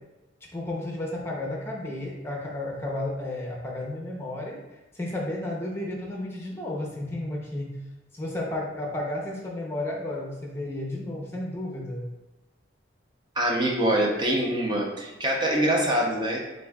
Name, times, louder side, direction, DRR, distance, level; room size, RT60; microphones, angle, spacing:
voice 1, 0.5-4.6 4.9-7.8 8.1-12.1, left 1 dB, 15° left, -2 dB, 0.7 m, -32 dB
voice 2, 13.4-16.4, right 1 dB, 25° right, -2 dB, 0.7 m, -24 dB
6.9 x 2.6 x 2.3 m, 1.1 s
head